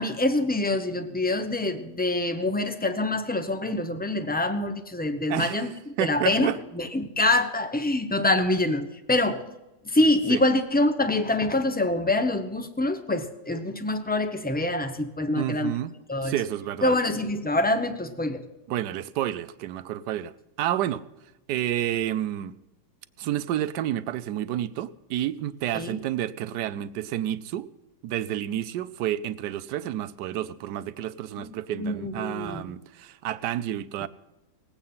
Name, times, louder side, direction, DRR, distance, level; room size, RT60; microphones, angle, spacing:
voice 1, 0.0-5.7 6.0-9.4 9.8-15.7 16.1-16.3 16.8-18.5 25.7-26.0 31.4-32.6, left 2 dB, 10° left, 0.6 m, -25 dB
voice 2, 5.3-6.6 10.3-10.4 15.3-15.9 16.2-16.9 18.7-21.0 21.5-22.5 23.2-27.7 28.0-34.1, right 12 dB, 80° right, 1.2 m, -30 dB
19.0 x 8.7 x 5.6 m
omnidirectional pair, 1.8 m